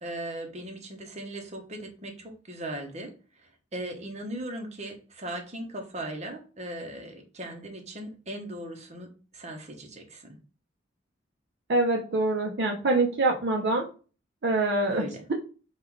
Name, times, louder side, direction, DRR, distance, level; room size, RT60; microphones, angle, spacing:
voice 1, 0.0-3.1 3.7-9.1 9.3-10.4 14.9-15.2, right 1 dB, 35° right, 3 dB, 0.8 m, -38 dB
voice 2, 11.7-13.9 14.4-15.3, right 2 dB, 55° right, 1 dB, 0.6 m, -25 dB
3.7 x 2.4 x 4.6 m, 0.36 s
head